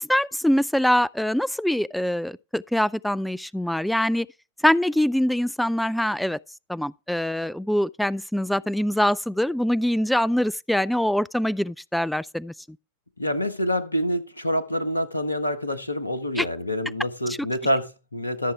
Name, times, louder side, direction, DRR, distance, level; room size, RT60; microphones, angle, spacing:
voice 1, 0.0-4.3 4.6-6.4 6.7-12.5 16.4-16.5, left 1 dB, ahead, 0.4 m, -24 dB
voice 2, 13.2-18.5, equal, 80° left, 1.4 m, -26 dB
14.0 x 7.0 x 3.4 m
figure-of-eight pair, 90°, 0 cm